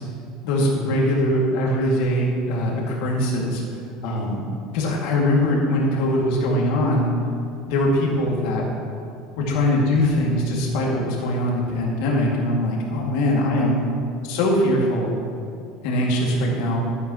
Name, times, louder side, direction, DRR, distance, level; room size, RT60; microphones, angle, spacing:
voice 1, 0.4-3.6 4.0-4.5 4.7-7.1 7.7-8.7 9.4-13.8 14.2-15.2 15.8-16.8, left 1 dB, 70° left, -3 dB, 2.2 m, -21 dB
11.0 x 10.5 x 3.0 m, 2.5 s
supercardioid pair, 130°, 0 cm